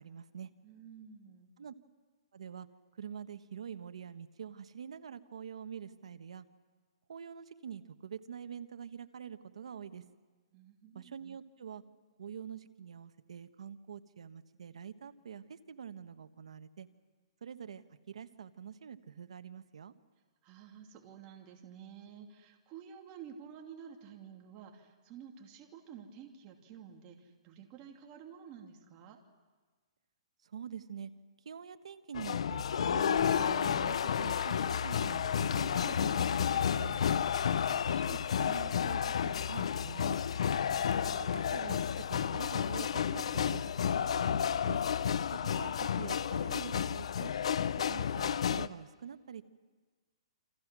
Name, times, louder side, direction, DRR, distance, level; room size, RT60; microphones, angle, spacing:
voice 1, 0.0-0.5 1.6-1.7 2.3-2.7 3.0-6.5 7.1-10.0 10.9-11.8 12.2-16.9 17.4-19.9 30.4-31.1 31.4-37.2 37.7-40.2 41.2-43.7 44.0-44.8 45.3-47.3 47.7-49.4, right 7 dB, 80° right, 10 dB, 1.3 m, -46 dB
voice 2, 0.6-1.5 10.5-11.2 20.4-29.2 40.7-41.3, right 8 dB, 25° right, 2 dB, 2.7 m, -51 dB
sound 1, 32.1-48.7, left 8 dB, 70° left, 0.7 m, -31 dB
29.0 x 25.5 x 6.2 m, 1.4 s
hypercardioid pair, 155°, 3 cm